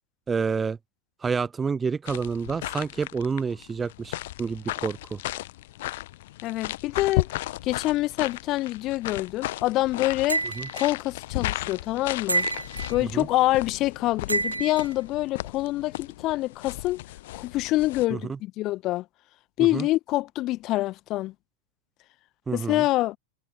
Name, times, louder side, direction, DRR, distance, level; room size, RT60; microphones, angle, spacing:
voice 1, 0.3-0.8 1.2-5.2 10.6-10.7 13.0-13.3 18.1-18.4 19.6-19.9 22.5-22.8, right 5 dB, 15° right, 0.6 m, -29 dB
sound 1, 2.1-18.1, left 16 dB, 55° left, 1.0 m, -35 dB
voice 2, 6.4-7.3 7.6-10.4 10.7-12.4 12.9-17.0 17.3-19.0 19.6-21.3 22.5-23.2, left 17 dB, 35° left, 1.5 m, -26 dB
sound 2, 10.3-10.9 12.3-13.0 14.3-14.9, right 3 dB, 80° right, 1.6 m, -28 dB
figure-of-eight pair, 90°, 0 cm